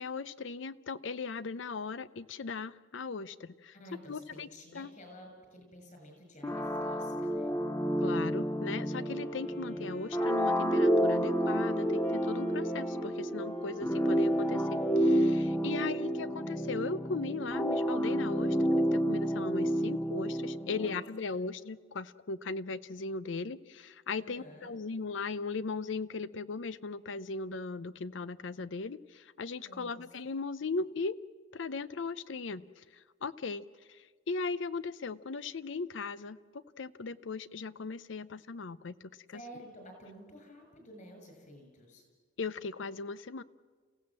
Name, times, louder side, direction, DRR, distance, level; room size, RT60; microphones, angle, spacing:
voice 1, 0.0-3.7 4.1-4.5 4.7-4.9 8.0-31.2 31.5-39.4 42.4-43.4, left 4 dB, 70° left, 17 dB, 0.6 m, -38 dB
voice 2, 3.7-7.5 15.5-16.3 20.6-20.9 24.2-24.8 29.6-30.0 39.3-42.0, equal, 45° left, 4 dB, 6.7 m, -51 dB
sound 1, 6.4-21.0, equal, 15° left, 0.8 m, -30 dB
Wind instrument woodwind instrument, 8.8-16.6, left 1 dB, 85° left, 7.7 m, -50 dB
30.0 x 16.0 x 7.5 m, 1.6 s
head